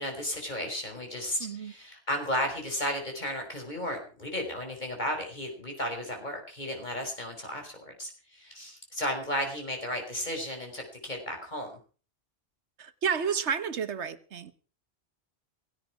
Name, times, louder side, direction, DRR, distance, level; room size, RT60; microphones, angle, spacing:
voice 1, 0.0-11.8, left 1 dB, 40° left, 5.4 m, -34 dB
voice 2, 1.4-1.7 12.8-14.5, right 6 dB, 85° right, 1.4 m, -31 dB
17.0 x 16.5 x 4.9 m
omnidirectional pair, 1.1 m